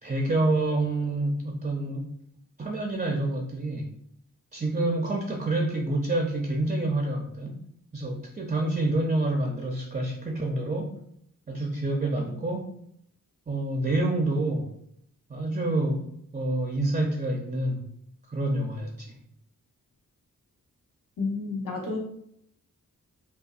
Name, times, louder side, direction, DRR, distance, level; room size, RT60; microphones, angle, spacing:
voice 1, 0.0-2.1 2.6-3.9 4.5-7.6 7.9-11.0 11.5-12.7 13.5-14.7 15.3-16.1 16.3-17.8 18.3-19.1, right 2 dB, 25° right, 1 dB, 0.5 m, -27 dB
voice 2, 21.2-22.0, left 3 dB, 75° left, -2 dB, 1.1 m, -30 dB
5.2 x 2.4 x 2.4 m, 0.71 s
cardioid pair, 70°, 33 cm